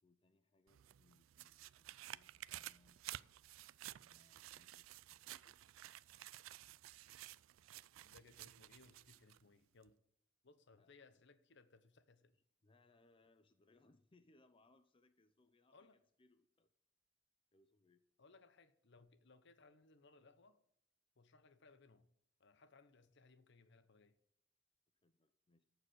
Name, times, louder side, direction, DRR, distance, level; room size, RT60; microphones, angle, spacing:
voice 1, 0.0-3.3 3.7-5.6 10.7-11.2 12.3-15.9 16.2-16.7 17.5-18.0 25.0-25.6, left 2 dB, 25° left, 8 dB, 0.5 m, -73 dB
Counting Money faster (bills), 0.7-9.4 9.8-9.9, right 14 dB, 90° right, 0.3 m, -54 dB
voice 2, 8.0-10.0 10.4-12.3 15.7-16.0 18.2-20.6 21.2-22.1 22.4-24.2, left 3 dB, 65° left, 11 dB, 1.0 m, -66 dB
14.0 x 4.9 x 6.3 m, 0.74 s
head